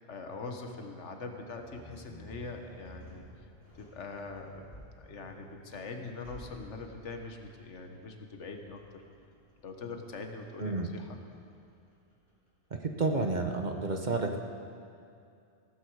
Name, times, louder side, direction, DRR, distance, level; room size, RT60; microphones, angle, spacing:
voice 1, 0.1-3.3 3.7-4.7 5.0-9.0 9.6-11.2, left 3 dB, 90° left, 4 dB, 1.5 m, -42 dB
sound 1, 1.5-12.7, left 1 dB, 30° left, 4.0 m, -54 dB
voice 2, 12.8-14.4, right 3 dB, 45° right, 4 dB, 0.9 m, -30 dB
16.0 x 13.5 x 4.7 m, 2.5 s
omnidirectional pair, 1.2 m